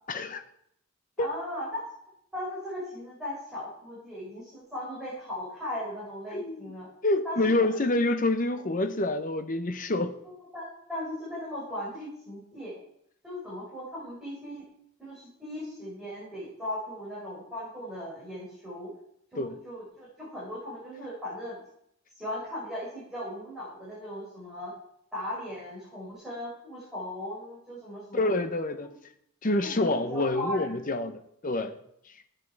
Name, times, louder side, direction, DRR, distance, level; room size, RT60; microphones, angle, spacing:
voice 1, 0.1-0.4 1.2-1.3 6.3-6.7 7.0-10.2 19.4-19.6 28.1-28.9 29.4-31.8, left 2 dB, 40° left, 0.8 m, -27 dB
voice 2, 1.2-1.8 2.3-6.9 7.2-7.4 7.7-7.8 10.2-12.8 13.2-14.6 15.0-18.9 19.3-21.6 22.1-24.7 25.1-28.3 28.8-28.9 29.6-30.8, left 1 dB, 5° right, 5.1 m, -38 dB
15.5 x 9.1 x 4.6 m
head